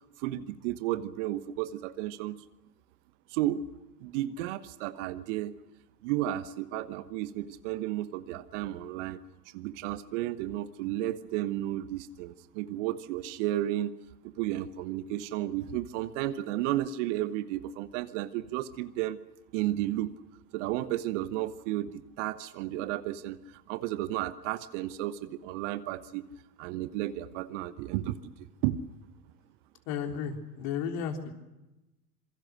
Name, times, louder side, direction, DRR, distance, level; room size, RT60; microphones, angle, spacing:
voice 1, 0.2-2.4 3.3-3.7 4.0-5.6 6.0-9.2 9.5-13.9 14.2-19.2 19.5-20.1 20.5-26.2 26.6-28.2 28.6-28.8, right 14 dB, 50° right, 13 dB, 1.3 m, -33 dB
voice 2, 29.9-31.3, left 7 dB, 45° left, 4 dB, 3.7 m, -33 dB
26.5 x 23.0 x 6.4 m, 0.99 s
figure-of-eight pair, 85°, 48 cm